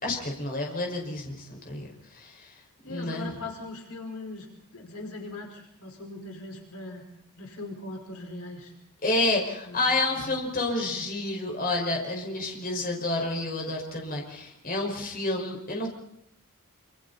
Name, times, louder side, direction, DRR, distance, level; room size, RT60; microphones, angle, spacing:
voice 1, 0.0-2.6 2.9-3.3 9.0-15.9, left 2 dB, 40° left, 1 dB, 5.5 m, -29 dB
voice 2, 2.8-7.0 7.4-8.7 9.6-10.4, left 2 dB, 70° left, 1 dB, 4.9 m, -40 dB
27.0 x 27.0 x 4.2 m, 0.77 s
head